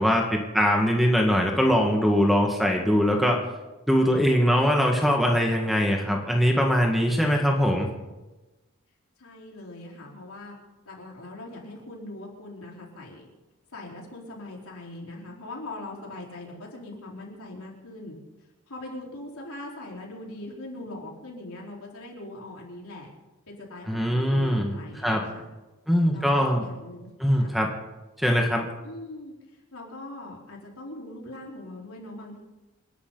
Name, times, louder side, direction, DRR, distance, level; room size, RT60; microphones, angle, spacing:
voice 1, 0.0-3.4 3.9-7.9 23.9-24.7 25.0-25.2 25.9-26.7 27.2-27.7 28.2-28.7, equal, ahead, 1 dB, 1.7 m, -22 dB
voice 2, 9.2-10.6 10.8-13.2 13.7-18.1 18.7-23.1 23.5-25.5 26.1-27.1 27.4-27.6 28.8-29.3 29.7-32.4, left 1 dB, 75° left, -2 dB, 4.4 m, -41 dB
28.0 x 11.5 x 4.0 m, 1.1 s
head